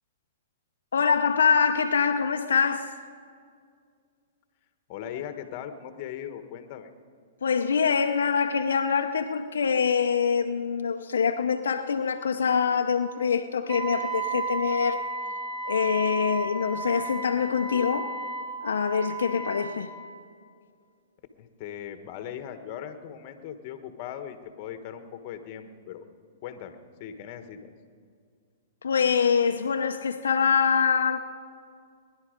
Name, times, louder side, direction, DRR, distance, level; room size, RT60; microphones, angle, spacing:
voice 1, 0.9-2.9 7.4-15.0 15.6-18.1 18.6-19.9 28.8-31.3, left 6 dB, 85° left, 5 dB, 0.7 m, -24 dB
voice 2, 4.9-6.9 21.4-26.0 26.4-27.7, left 9 dB, 45° left, 8 dB, 1.4 m, -39 dB
Wind instrument woodwind instrument, 13.7-19.9, right 4 dB, 55° right, 2.5 m, -33 dB
20.0 x 11.0 x 5.2 m, 2.1 s
hypercardioid pair, 130°, 0 cm